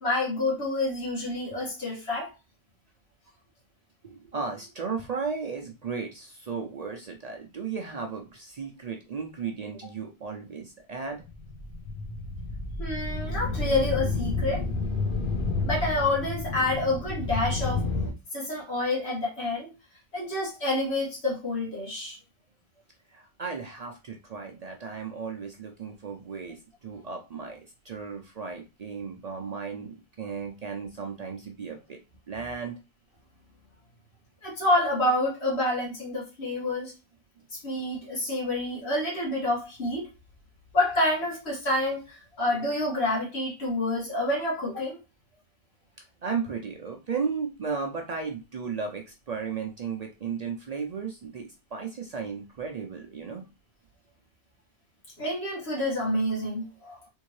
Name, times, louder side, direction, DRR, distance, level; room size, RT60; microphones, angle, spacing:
voice 1, 0.0-2.3 12.8-14.6 15.6-17.9 18.3-19.7 20.1-22.2 34.4-36.9 37.5-40.1 40.7-45.0 55.2-57.1, left 1 dB, 80° left, -4 dB, 1.8 m, -28 dB
voice 2, 4.0-11.2 23.1-32.0 32.3-32.8 46.0-53.4, right 5 dB, 55° right, 2 dB, 0.5 m, -35 dB
sound 1, 11.2-18.1, left 3 dB, 55° left, 0.9 m, -30 dB
3.5 x 2.6 x 3.0 m, 0.29 s
omnidirectional pair, 1.1 m